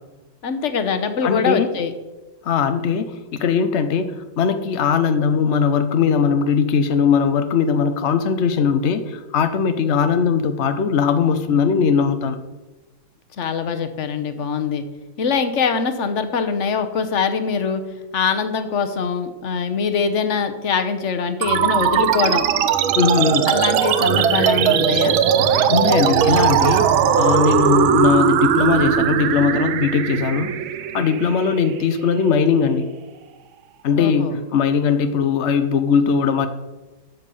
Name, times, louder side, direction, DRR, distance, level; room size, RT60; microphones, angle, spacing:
voice 1, 0.4-1.9 13.4-14.8 15.2-17.8 18.1-22.5 23.5-25.2 34.0-34.4, left 5 dB, 50° left, 8 dB, 0.9 m, -23 dB
voice 2, 1.2-1.7 2.4-12.4 23.0-23.5 25.7-26.9 27.2-30.5 30.9-32.9 33.8-36.5, left 6 dB, 80° left, 8 dB, 0.6 m, -19 dB
sound 1, 21.4-32.4, right 9 dB, 85° right, 1.6 m, -19 dB
10.0 x 7.3 x 6.9 m, 1.1 s
omnidirectional pair, 2.2 m